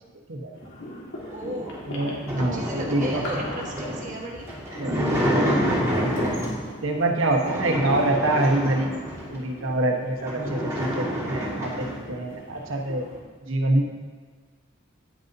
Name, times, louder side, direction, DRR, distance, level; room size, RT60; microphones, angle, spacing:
sound 1, 0.5-13.2, left 1 dB, 60° left, 1.9 m, -41 dB
voice 1, 1.3-1.8 2.5-4.5 7.5-7.8 13.4-13.5, equal, 40° right, -2 dB, 1.5 m, -35 dB
sound 2, 1.6-6.7 7.3-9.4 9.8-9.9 10.1-12.0, equal, 15° right, 1.9 m, -28 dB
voice 2, 1.8-3.2 4.8-6.3 6.8-13.1 13.5-14.0, right 2 dB, 75° right, 2 dB, 1.2 m, -26 dB
9.9 x 9.2 x 2.7 m, 1.5 s
head